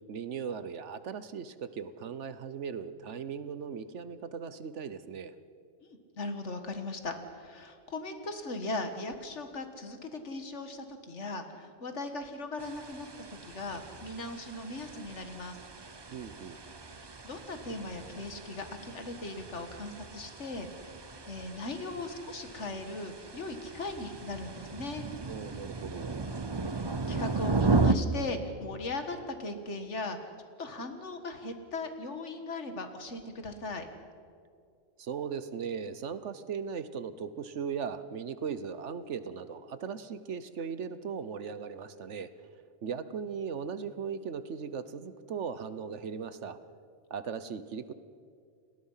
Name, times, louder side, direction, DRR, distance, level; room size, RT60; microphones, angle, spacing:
voice 1, 0.1-5.3 16.1-16.6 25.3-26.2 35.0-42.3 42.8-46.6 47.1-47.9, right 6 dB, 65° right, 13 dB, 1.2 m, -38 dB
voice 2, 6.2-13.1 13.4-15.6 17.0-20.7 21.3-25.0 26.8-30.3 30.6-33.9, left 2 dB, 65° left, 7 dB, 2.0 m, -38 dB
sound 1, 12.6-27.9, right 3 dB, 25° right, 0.7 m, -35 dB
30.0 x 19.5 x 5.7 m, 2.3 s
omnidirectional pair, 1.3 m